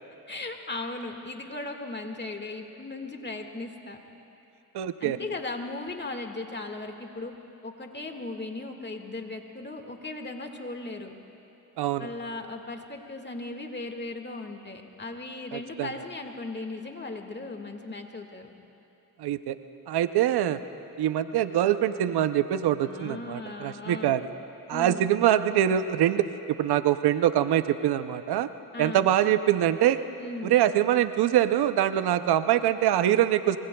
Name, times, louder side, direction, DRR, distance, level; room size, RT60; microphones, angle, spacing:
voice 1, 0.3-4.0 5.0-7.3 7.6-11.1 12.0-18.5 22.8-24.2 24.7-25.1 28.7-29.1 30.2-30.5, left 2 dB, 25° left, 4 dB, 1.8 m, -37 dB
voice 2, 4.7-5.2 11.8-12.1 15.5-15.9 19.2-19.6 19.9-20.6 21.0-24.3 24.7-28.5 28.8-30.0 30.4-33.6, right 11 dB, 80° right, 11 dB, 0.6 m, -24 dB
25.0 x 24.0 x 2.3 m, 2.9 s
cardioid pair, 65°, 38 cm